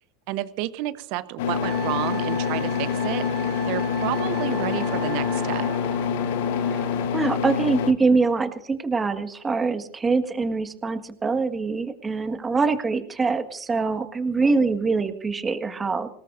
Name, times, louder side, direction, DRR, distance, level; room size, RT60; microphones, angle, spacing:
voice 1, 0.3-3.3 3.6-5.7 12.3-12.4, right 16 dB, 60° right, 14 dB, 1.0 m, -30 dB
sound 1, 1.4-7.9, left 7 dB, 70° left, 1.1 m, -26 dB
Wind instrument woodwind instrument, 1.6-6.1, right 7 dB, 45° right, 3.3 m, -38 dB
sound 2, 3.5-7.4, left 2 dB, 10° left, 0.9 m, -38 dB
voice 2, 7.1-16.1, right 4 dB, 20° right, 8 dB, 1.7 m, -24 dB
27.5 x 18.5 x 2.6 m, 0.68 s
hypercardioid pair, 90°, 0 cm